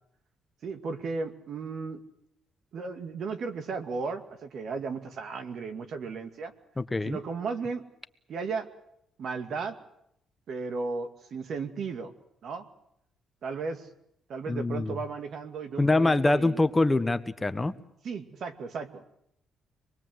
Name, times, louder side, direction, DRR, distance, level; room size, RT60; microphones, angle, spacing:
voice 1, 0.6-2.0 2.7-6.5 7.0-7.8 8.3-8.7 9.2-9.8 10.5-12.1 12.4-12.7 13.4-13.9 14.3-16.6 18.0-19.1, right 4 dB, 65° right, 7 dB, 2.4 m, -35 dB
voice 2, 6.8-7.2 14.5-14.9 15.8-17.7, left 2 dB, 15° left, 11 dB, 1.1 m, -24 dB
26.0 x 20.5 x 8.0 m, 0.78 s
cardioid pair, 90°, 0 cm